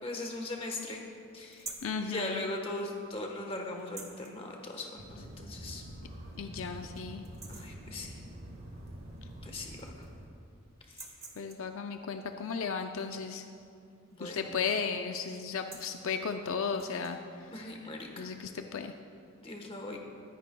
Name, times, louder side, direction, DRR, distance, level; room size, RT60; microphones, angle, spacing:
voice 1, 0.0-1.0 1.3-1.7 2.0-5.8 7.5-8.2 9.4-10.0 10.9-11.1 14.1-14.5 17.5-18.3 19.4-20.0, left 2 dB, 25° left, 2 dB, 1.2 m, -39 dB
sound 1, 1.5-2.0 3.8-4.3 5.7-5.8 6.3-6.4 6.8-7.0 7.2-7.8 9.2-9.3 9.5-10.3 10.8-11.8 14.1-14.4 14.7-15.0 15.4-16.0 16.7-17.2, right 3 dB, 15° right, 0.8 m, -47 dB
voice 2, 1.8-2.4 6.4-7.2 11.4-13.4 14.2-17.5 18.2-18.9, left 5 dB, 70° left, 6 dB, 0.5 m, -35 dB
sound 2, 5.0-10.3, right 1 dB, 90° right, 2.4 m, -46 dB
22.0 x 10.0 x 2.3 m, 2.4 s
head